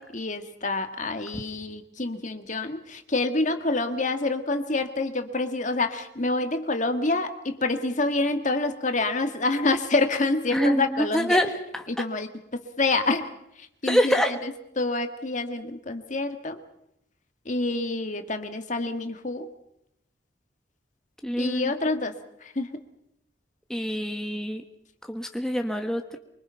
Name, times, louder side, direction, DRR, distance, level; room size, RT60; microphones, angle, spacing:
voice 1, 0.0-11.4 11.9-13.3 13.6-16.6 17.5-19.5 21.3-22.7, left 2 dB, 40° left, 7 dB, 1.8 m, -27 dB
voice 2, 10.5-11.5 13.9-14.3 21.2-21.7 23.7-24.6 25.1-26.2, equal, 5° left, 4 dB, 1.3 m, -25 dB
24.5 x 24.0 x 5.7 m, 0.77 s
head